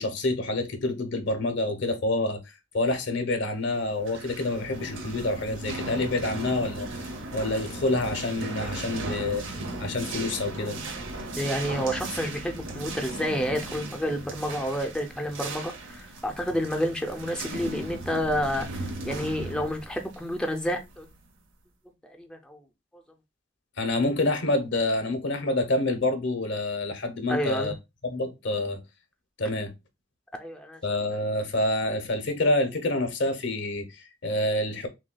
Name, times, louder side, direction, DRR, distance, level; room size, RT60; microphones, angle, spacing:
voice 1, 0.0-2.4 2.7-9.4 9.8-10.8 23.8-27.7 28.0-28.8 29.4-29.7 30.8-34.9, left 2 dB, 65° left, 0.9 m, -27 dB
sound 1, 3.9-21.3, right 2 dB, 80° right, 0.8 m, -37 dB
voice 2, 11.3-21.1 22.0-22.6 27.3-27.7 30.4-30.8, equal, 5° left, 0.5 m, -30 dB
6.1 x 2.3 x 2.2 m
head